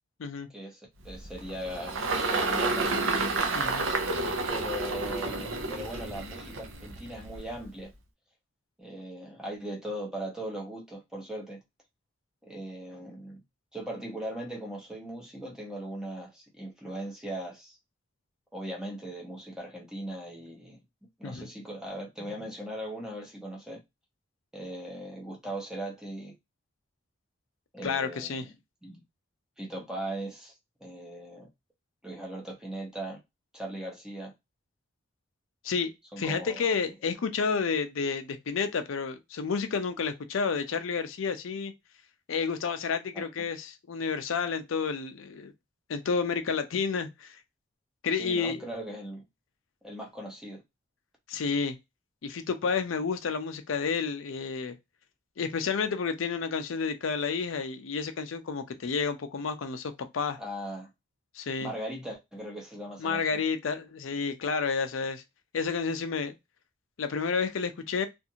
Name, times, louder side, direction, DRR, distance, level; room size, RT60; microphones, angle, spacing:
voice 1, 0.5-3.0 4.5-7.9 8.8-11.6 12.4-13.4 13.7-17.8 18.5-20.8 21.2-23.8 24.5-26.4 27.7-28.5 28.8-29.0 29.6-30.5 30.8-31.5 32.0-33.2 33.5-34.3 36.1-36.8 43.1-43.3 48.2-49.2 49.8-50.6 60.4-60.9 61.6-63.4, right 1 dB, 5° right, 0.7 m, -39 dB
Engine, 1.0-7.6, right 3 dB, 90° right, 0.6 m, -30 dB
voice 2, 3.5-3.9 21.2-21.5 27.8-28.4 35.6-41.7 42.3-45.5 45.9-47.4 48.0-48.6 51.3-51.8 52.2-54.7 55.4-60.4 61.3-61.7 63.0-65.2 65.5-66.3 67.0-68.1, left 5 dB, 90° left, 0.5 m, -30 dB
2.5 x 2.5 x 2.7 m
head